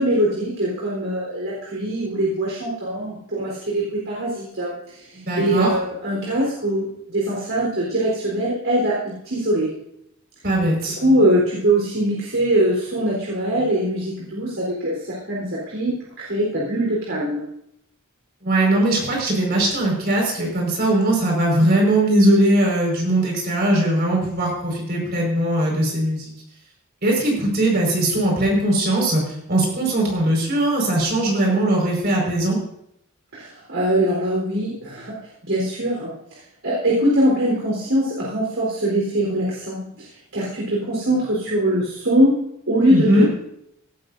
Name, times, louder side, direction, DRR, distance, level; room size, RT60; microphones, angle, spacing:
voice 1, 0.0-9.7 11.0-15.9 16.2-17.4 33.3-35.2 35.5-36.1 36.6-40.1 40.3-42.3 42.7-43.4, right 1 dB, 65° right, -5 dB, 4.0 m, -22 dB
voice 2, 5.1-5.7 10.4-11.0 18.4-26.3 27.0-32.6 42.9-43.3, right 1 dB, 45° right, -1 dB, 5.2 m, -20 dB
17.5 x 12.5 x 2.7 m, 0.75 s
head